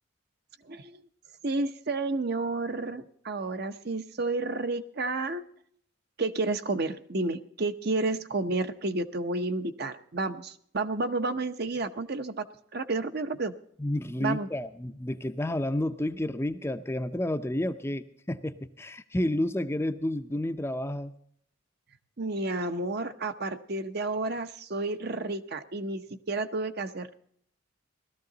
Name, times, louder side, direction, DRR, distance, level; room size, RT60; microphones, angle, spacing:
voice 1, 0.7-1.0 1.4-5.4 6.2-12.4 12.7-13.5 14.2-14.5 22.2-27.1, right 2 dB, 50° right, 10 dB, 0.8 m, -31 dB
voice 2, 13.8-21.1, left 1 dB, 10° left, 9 dB, 0.5 m, -30 dB
17.0 x 13.5 x 3.9 m, 0.64 s
head